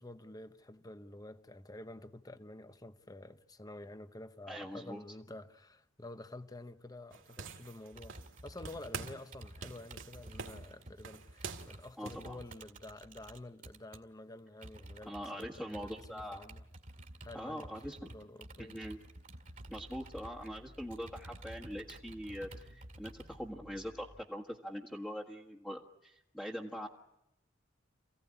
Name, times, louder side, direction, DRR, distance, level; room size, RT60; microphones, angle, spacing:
voice 1, 0.0-16.6 17.2-17.8 18.1-18.8, left 1 dB, 20° left, 0.9 m, -49 dB
voice 2, 4.5-5.0 12.0-12.4 15.0-16.4 17.3-18.1 18.6-19.0 19.7-26.9, equal, 5° left, 1.6 m, -43 dB
sound 1, 7.1-8.4 8.7-9.3 9.6-12.3, right 5 dB, 75° right, 2.4 m, -46 dB
Computer keyboard, 7.9-14.0 14.6-23.4, right 1 dB, 45° right, 2.0 m, -52 dB
Growling, 19.3-24.3, equal, 80° left, 3.7 m, -57 dB
28.0 x 16.5 x 9.9 m
head